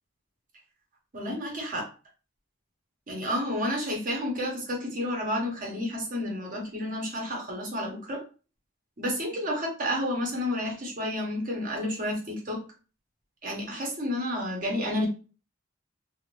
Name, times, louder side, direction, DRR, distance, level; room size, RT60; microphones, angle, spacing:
voice 1, 1.1-1.9 3.1-8.2 9.0-12.6 13.4-15.1, left 1 dB, 45° right, -1 dB, 1.0 m, -30 dB
2.6 x 2.5 x 3.0 m, 0.35 s
head